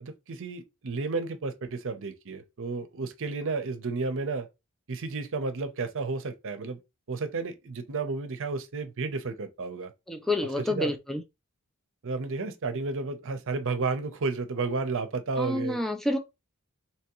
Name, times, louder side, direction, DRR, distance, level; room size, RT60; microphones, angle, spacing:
voice 1, 0.0-4.5 4.9-6.8 7.1-9.9 10.6-11.0 12.0-15.8, right 3 dB, 65° right, 0.7 m, -32 dB
voice 2, 10.1-11.2 15.4-16.2, left 1 dB, ahead, 0.4 m, -28 dB
3.5 x 3.0 x 3.0 m
head